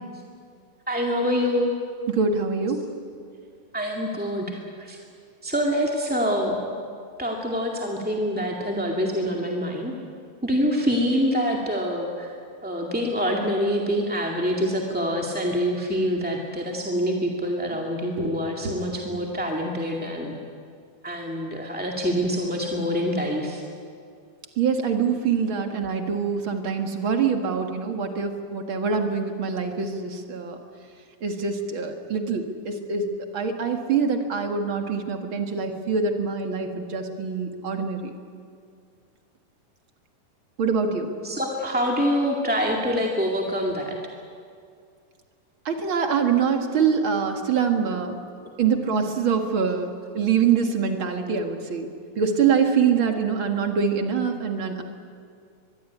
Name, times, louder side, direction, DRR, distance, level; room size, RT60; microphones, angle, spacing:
voice 1, 0.9-1.7 3.7-5.0 5.4-6.7 7.2-9.9 10.4-12.3 12.6-20.3 21.0-23.6 41.2-44.0 48.4-48.5, equal, 5° right, 0 dB, 1.3 m, -25 dB
voice 2, 2.1-2.8 18.2-18.4 18.6-18.8 24.6-30.6 31.2-38.1 40.6-41.1 45.7-48.2 48.6-51.9 52.2-54.8, right 6 dB, 45° right, 4 dB, 2.3 m, -24 dB
24.0 x 22.0 x 9.5 m, 2.3 s
omnidirectional pair, 3.9 m